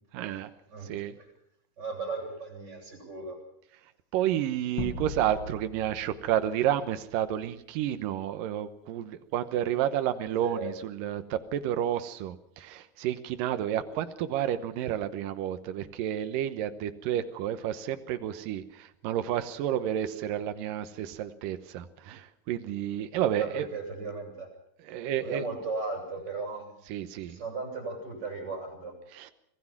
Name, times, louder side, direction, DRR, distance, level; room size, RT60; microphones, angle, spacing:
voice 1, 0.1-0.5 0.8-1.2 4.1-23.7 24.8-25.4 26.9-27.4 29.1-29.3, right 11 dB, 80° right, 10 dB, 2.7 m, -31 dB
voice 2, 0.7-1.3 1.8-3.4 10.4-10.7 23.4-24.5 25.2-26.7 27.2-29.0, right 3 dB, 30° right, 2 dB, 7.7 m, -36 dB
sound 1, 4.8-7.4, left 4 dB, 45° left, 1.7 m, -39 dB
25.5 x 19.0 x 6.0 m, 0.73 s
omnidirectional pair, 3.9 m